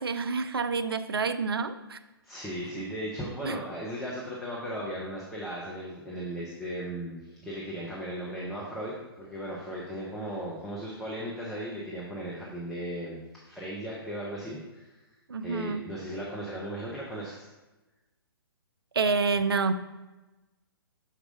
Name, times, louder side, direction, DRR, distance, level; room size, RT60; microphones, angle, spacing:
voice 1, 0.0-2.0 3.4-3.6 15.3-15.9 18.9-19.7, right 4 dB, 70° right, 11 dB, 0.5 m, -28 dB
voice 2, 2.2-15.0 15.4-17.5, equal, ahead, -6 dB, 0.8 m, -37 dB
6.4 x 4.8 x 3.8 m, 1.1 s
figure-of-eight pair, 125°, 13 cm